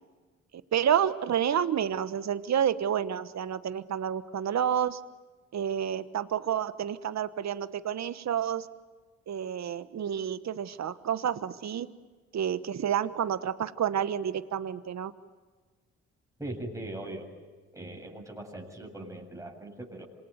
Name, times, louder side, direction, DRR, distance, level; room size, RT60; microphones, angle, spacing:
voice 1, 0.7-5.0 5.5-8.7 9.3-11.9 12.3-15.1, right 9 dB, 55° right, 13 dB, 1.3 m, -29 dB
voice 2, 16.4-17.3 17.7-20.1, right 1 dB, 10° right, 0 dB, 7.2 m, -40 dB
27.0 x 21.5 x 9.7 m, 1.4 s
hypercardioid pair, 45°, 32 cm